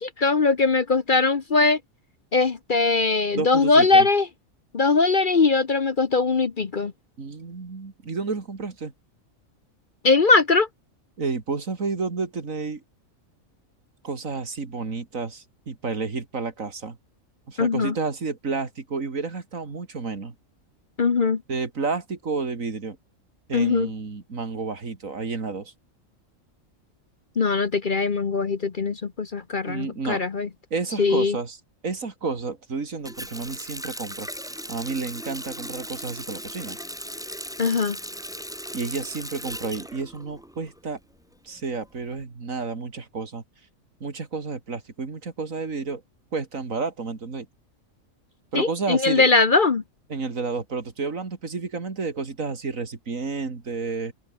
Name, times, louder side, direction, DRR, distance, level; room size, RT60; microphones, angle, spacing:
voice 1, 0.0-1.8 2.3-4.3 4.7-6.9 10.0-10.7 17.6-17.9 21.0-21.4 23.5-23.9 27.4-30.5 31.0-31.4 37.6-38.0 48.5-49.8, left 4 dB, 40° left, 1.0 m, -21 dB
voice 2, 3.3-4.1 7.2-8.9 11.2-12.8 14.0-17.0 17.5-20.3 21.5-23.0 23.5-25.7 29.7-30.2 30.7-31.6 31.8-34.3 34.7-36.8 38.7-41.0 41.4-43.4 44.0-46.0 46.3-47.5 48.5-49.2 50.1-54.1, right 4 dB, 70° right, 3.0 m, -31 dB
Water tap faucet, 33.1-40.8 41.1-42.2, equal, ahead, 6.1 m, -37 dB
omnidirectional pair, 1.4 m